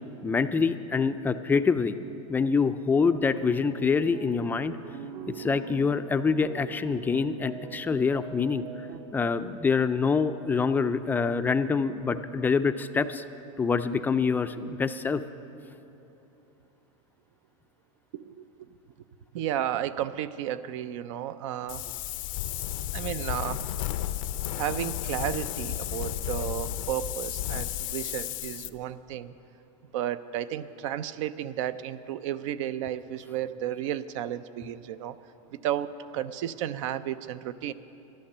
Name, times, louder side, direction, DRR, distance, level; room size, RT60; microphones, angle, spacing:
voice 1, 0.2-1.9 2.3-4.8 5.4-8.6 9.1-13.2 13.6-15.2, left 5 dB, 10° left, 10 dB, 0.3 m, -25 dB
sound 1, 2.9-9.0, right 7 dB, 55° right, 0.9 m, -42 dB
voice 2, 18.1-18.7 19.3-21.9 22.9-23.6 24.6-29.3 29.9-35.2 35.5-37.7, right 11 dB, 70° right, 14 dB, 0.6 m, -33 dB
Wind, 21.7-28.7, left 13 dB, 75° left, 0.6 m, -33 dB
12.5 x 11.5 x 6.7 m, 2.9 s
supercardioid pair, 135°, 17 cm